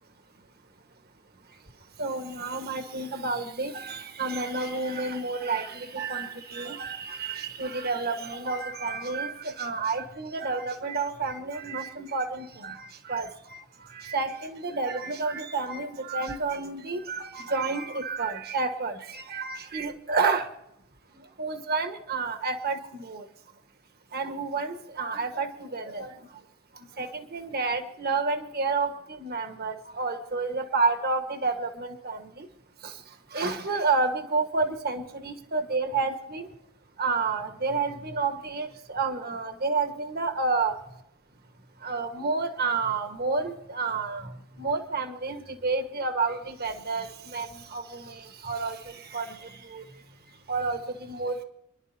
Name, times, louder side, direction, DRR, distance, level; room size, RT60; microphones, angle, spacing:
voice 1, 2.0-13.6 13.9-20.5 21.4-23.2 24.1-26.1 27.0-32.5 32.8-32.9 33.3-36.5 37.0-40.7 41.8-44.3 44.6-49.8 50.5-51.4, right 4 dB, 50° right, 6 dB, 1.4 m, -30 dB
28.0 x 11.5 x 2.8 m, 0.82 s
head